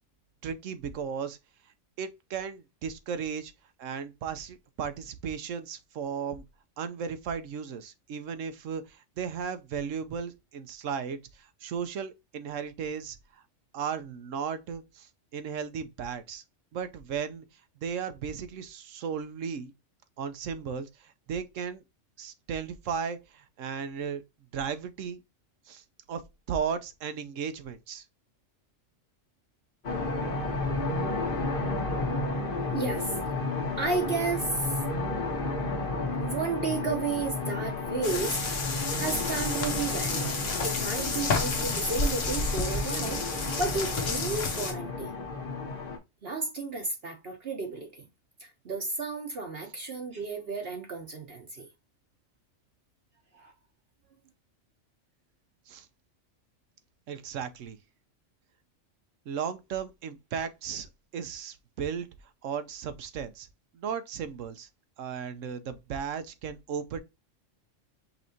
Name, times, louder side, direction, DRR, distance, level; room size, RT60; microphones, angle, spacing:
voice 1, 0.4-1.4 2.0-3.5 3.8-6.4 6.8-13.4 13.7-16.4 16.7-19.7 20.2-21.8 22.2-24.2 24.5-25.2 25.7-26.2 26.5-28.0 55.7-55.9 57.1-57.8 59.3-62.1 62.4-63.5 63.7-64.7 65.0-67.0, right 7 dB, 75° right, 1.1 m, -35 dB
sound 1, 29.8-46.0, left 2 dB, 45° left, 1.4 m, -32 dB
voice 2, 32.7-33.2 33.8-34.8 35.8-35.9 36.2-38.4 39.0-45.1 46.2-48.0 48.4-51.7 53.3-53.5, right 4 dB, 55° right, 1.1 m, -33 dB
sound 2, 38.0-44.7, left 3 dB, 75° left, 1.5 m, -31 dB
5.6 x 3.3 x 2.7 m
omnidirectional pair, 1.3 m